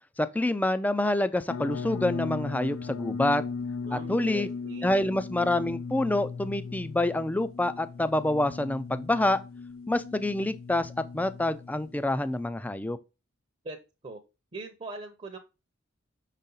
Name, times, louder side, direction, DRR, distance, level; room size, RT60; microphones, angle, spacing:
voice 1, 0.2-3.4 3.9-4.5 4.8-9.4 9.9-13.0, left 1 dB, 10° left, 0.4 m, -27 dB
sound 1, 1.5-12.4, left 5 dB, 85° left, 0.5 m, -37 dB
voice 2, 3.9-4.9 13.6-13.8 14.0-14.2 14.5-15.4, right 2 dB, 30° right, 0.7 m, -41 dB
6.1 x 4.1 x 3.8 m
head